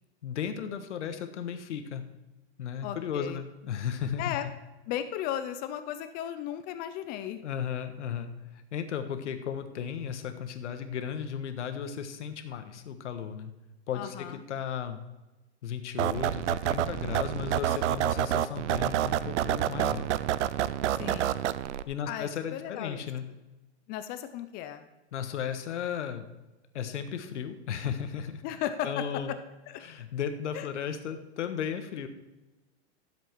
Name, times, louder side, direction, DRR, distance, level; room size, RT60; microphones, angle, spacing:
voice 1, 0.2-2.0 2.6-4.4 7.4-13.5 13.9-15.0 15.6-20.0 21.9-23.2 25.1-26.2 26.7-28.4 28.8-29.4 29.8-32.1, left 8 dB, 90° left, 8 dB, 1.5 m, -35 dB
voice 2, 2.8-3.4 4.2-4.4 4.9-7.4 13.9-14.4 21.0-21.4 22.1-23.1 23.9-24.9 28.4-29.0 29.7-29.8 30.5-30.7, left 11 dB, 25° left, 10 dB, 0.5 m, -35 dB
sound 1, 16.0-21.8, right 12 dB, 85° right, 0.6 m, -28 dB
13.5 x 7.6 x 4.6 m, 1.0 s
supercardioid pair, 150°, 34 cm